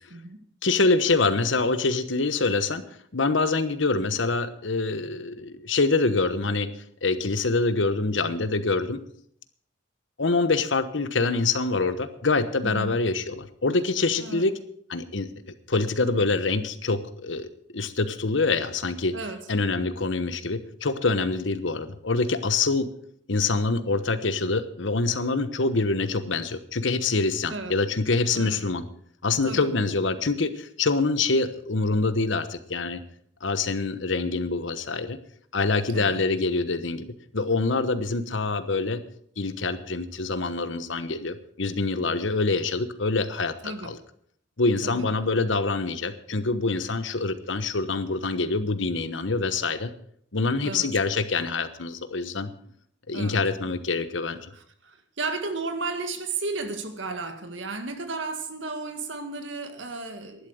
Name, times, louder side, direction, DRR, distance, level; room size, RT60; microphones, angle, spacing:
voice 1, 0.1-0.4 12.6-13.0 14.2-14.5 19.1-19.5 27.5-27.8 28.3-28.6 29.5-29.7 35.9-36.2 43.6-44.0 44.8-45.1 50.6-50.9 53.1-53.4 54.5-60.5, right 3 dB, 75° right, 8 dB, 1.8 m, -34 dB
voice 2, 0.6-2.8 3.1-6.7 7.0-9.0 10.2-14.6 14.9-15.3 15.7-17.5 17.7-19.2 19.5-22.9 23.3-28.9 29.2-33.0 33.4-35.2 35.5-37.1 37.3-39.0 39.4-44.0 44.6-49.9 50.3-52.5 53.1-54.4, left 3 dB, 75° left, 12 dB, 1.2 m, -25 dB
11.5 x 11.5 x 6.4 m, 0.64 s
head